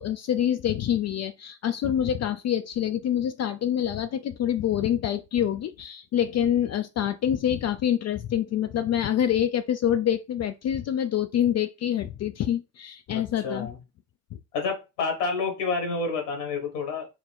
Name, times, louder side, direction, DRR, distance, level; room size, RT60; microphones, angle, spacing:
voice 1, 0.0-13.7, left 10 dB, 35° left, 0.4 m, -26 dB
voice 2, 13.1-13.8 14.5-17.1, left 4 dB, 85° left, 1.5 m, -29 dB
4.8 x 2.2 x 3.9 m
hypercardioid pair, 55°, 46 cm